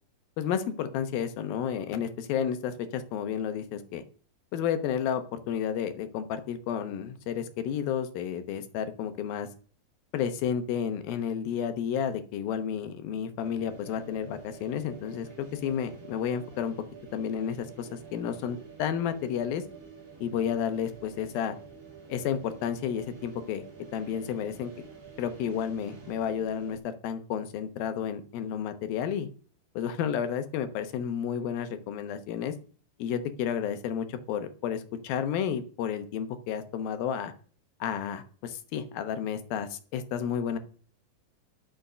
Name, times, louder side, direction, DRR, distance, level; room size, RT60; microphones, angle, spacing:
voice 1, 0.4-4.0 4.5-9.5 10.1-16.8 17.1-19.6 20.2-21.6 22.1-23.7 23.9-24.7 25.2-29.3 29.7-32.5 33.0-37.3 37.8-40.6, left 8 dB, 85° left, 9 dB, 2.9 m, -31 dB
sound 1, 13.4-26.8, right 6 dB, 25° right, 4.0 m, -49 dB
11.5 x 6.3 x 6.8 m, 0.43 s
omnidirectional pair, 4.1 m